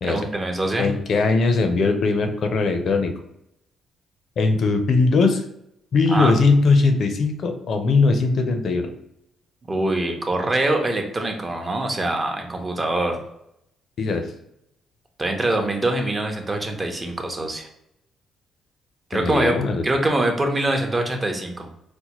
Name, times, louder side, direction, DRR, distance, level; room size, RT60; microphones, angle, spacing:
voice 1, 0.0-0.9 6.1-6.4 9.7-13.2 15.2-17.7 19.1-21.7, right 2 dB, 25° right, 3 dB, 0.7 m, -24 dB
voice 2, 0.8-3.1 4.4-5.4 5.9-8.9 14.0-14.2 19.1-19.8, left 3 dB, 60° left, 6 dB, 0.5 m, -20 dB
4.3 x 2.1 x 2.9 m, 0.80 s
cardioid pair, 90°, 0 cm